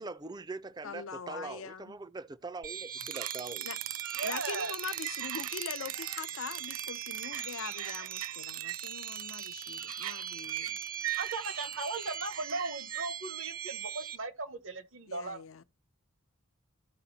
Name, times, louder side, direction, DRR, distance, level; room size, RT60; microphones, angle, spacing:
voice 1, 0.0-3.7, right 3 dB, 20° right, 0.4 m, -42 dB
voice 2, 0.8-2.0 3.6-3.8 4.2-10.8 15.1-15.6, left 6 dB, 80° left, 0.6 m, -42 dB
sound 1, 2.6-14.2, right 8 dB, 45° right, 0.7 m, -41 dB
sound 2, 3.0-13.1, right 14 dB, 90° right, 0.4 m, -40 dB
voice 3, 4.1-4.7 11.2-15.4, right 3 dB, 75° right, 1.1 m, -37 dB
14.0 x 5.0 x 2.7 m
head